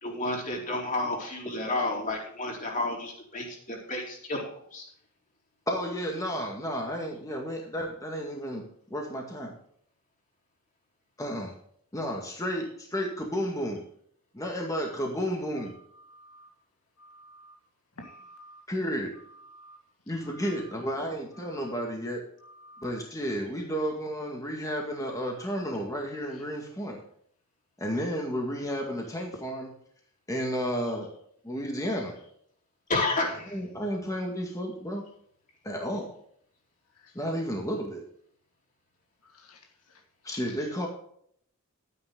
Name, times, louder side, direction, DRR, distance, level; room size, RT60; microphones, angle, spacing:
voice 1, 0.0-4.8 32.9-33.6, left 2 dB, 35° left, -1 dB, 4.2 m, -31 dB
voice 2, 5.7-8.6 8.9-9.5 11.2-11.5 11.9-13.8 14.3-15.7 18.7-19.1 20.1-22.2 22.8-27.0 27.8-29.7 30.3-31.1 31.4-32.2 33.5-35.0 35.6-36.1 37.1-38.0 40.2-40.9, equal, 15° left, 0 dB, 2.0 m, -32 dB
voice 3, 16.1-16.5 17.0-17.5 18.0-18.6 19.5-19.8 22.6-22.8, equal, 80° left, 3 dB, 1.9 m, -50 dB
12.5 x 9.8 x 3.8 m, 0.65 s
head